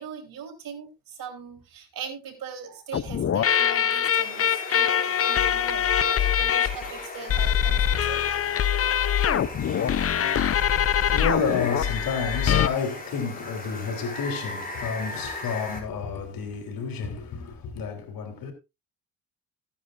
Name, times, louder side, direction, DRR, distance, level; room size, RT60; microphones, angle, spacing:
voice 1, 0.0-8.2 8.5-8.6, right 6 dB, 70° right, 4.0 m, -40 dB
sound 1, 2.9-12.7, left 9 dB, 40° left, 0.7 m, -23 dB
Water, 4.1-15.8, left 3 dB, 25° left, 5.6 m, -38 dB
voice 2, 9.5-18.5, left 5 dB, 70° left, 3.8 m, -31 dB
15.5 x 10.0 x 2.6 m
supercardioid pair, 75°, 36 cm